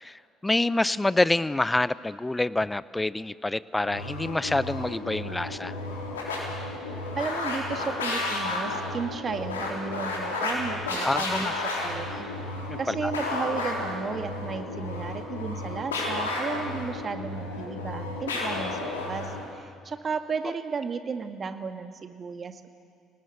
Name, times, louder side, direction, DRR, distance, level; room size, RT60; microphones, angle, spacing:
voice 1, 0.0-5.8 11.0-11.5 12.7-13.1, left 2 dB, 15° left, 19 dB, 0.7 m, -27 dB
sound 1, 3.8-19.5, left 2 dB, 85° left, 3.5 m, -32 dB
voice 2, 7.2-12.3 12.8-22.7, right 5 dB, 40° right, 8 dB, 1.9 m, -34 dB
28.5 x 19.0 x 8.0 m, 2.2 s
hypercardioid pair, 55°, 0 cm